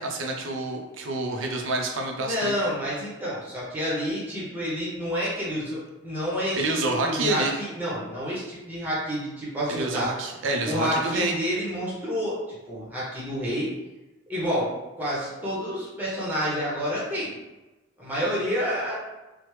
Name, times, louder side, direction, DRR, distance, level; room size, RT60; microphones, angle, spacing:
voice 1, 0.0-2.5 6.5-7.5 9.7-11.3, right 2 dB, 80° right, 2 dB, 0.5 m, -28 dB
voice 2, 2.2-6.8 7.0-10.1 10.6-13.7 14.3-17.3 18.0-19.0, equal, 10° right, -7 dB, 0.7 m, -29 dB
3.2 x 2.0 x 3.1 m, 1.1 s
head